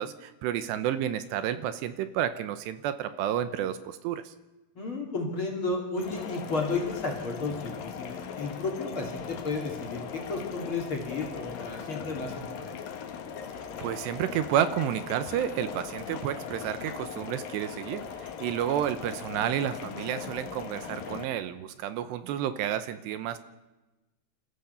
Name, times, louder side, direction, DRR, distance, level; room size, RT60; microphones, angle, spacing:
voice 1, 0.0-4.3 13.8-23.4, right 10 dB, 80° right, 12 dB, 2.9 m, -30 dB
voice 2, 4.7-12.8, left 3 dB, 35° left, 1 dB, 3.0 m, -33 dB
sound 1, 6.0-21.2, left 7 dB, 60° left, 3.0 m, -39 dB
27.0 x 14.5 x 7.0 m, 1.1 s
omnidirectional pair, 5.2 m